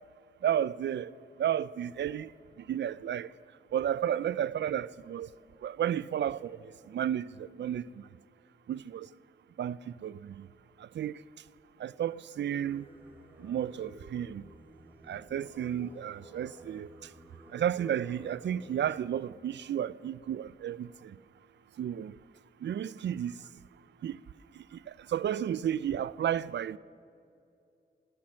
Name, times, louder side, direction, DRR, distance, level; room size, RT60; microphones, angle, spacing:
voice 1, 0.4-1.1 1.4-2.3 2.7-3.3 3.7-5.3 5.6-6.6 6.9-7.9 8.7-9.1 9.6-10.5 10.9-11.2 11.8-12.9 13.4-14.4 15.1-16.9 17.5-21.2 21.8-22.2 22.6-23.4 24.0-24.2 24.7-24.8 25.1-26.8, right 10 dB, 80° right, 0.4 m, -32 dB
Singing, 12.4-19.1, right 1 dB, 10° right, 2.3 m, -53 dB
17.5 x 13.0 x 6.3 m
wide cardioid pair, 125°, 18 cm